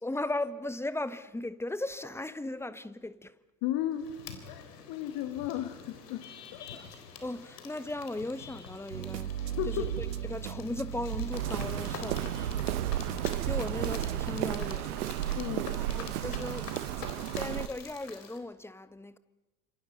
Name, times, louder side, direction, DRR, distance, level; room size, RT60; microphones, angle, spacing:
voice 1, 0.0-3.4 6.7-6.8 7.2-9.3 9.7-12.2 13.0-15.6 15.9-16.8 17.3-19.2, left 2 dB, 5° left, 1.2 m, -37 dB
voice 2, 3.6-4.1 4.5-6.9 9.6-9.9 15.4-15.7, left 12 dB, 45° left, 2.1 m, -35 dB
sound 1, 3.9-18.4, left 6 dB, 70° left, 3.9 m, -47 dB
sound 2, 8.9-14.5, right 10 dB, 80° right, 0.8 m, -36 dB
Walk footsteps, 11.3-17.7, right 13 dB, 60° right, 1.2 m, -33 dB
29.5 x 27.0 x 5.5 m
figure-of-eight pair, 80°, 50 cm